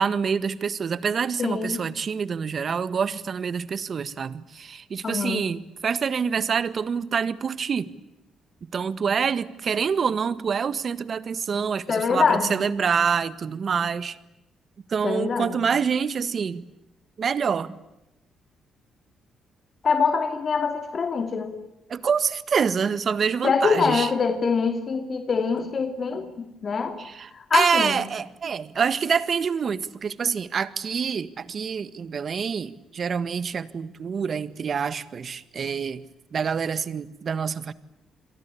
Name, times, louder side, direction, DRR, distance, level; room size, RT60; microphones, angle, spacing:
voice 1, 0.0-7.9 8.7-14.2 14.9-16.7 17.2-17.8 21.9-24.1 27.0-36.0 36.3-37.7, right 6 dB, 50° right, 1.7 m, -26 dB
voice 2, 1.4-1.8 5.0-5.4 11.9-12.5 15.0-15.6 19.8-21.5 23.4-27.0 27.3-28.0, left 5 dB, 45° left, 3.1 m, -24 dB
29.0 x 23.0 x 8.6 m
cardioid pair, 90°, 0 cm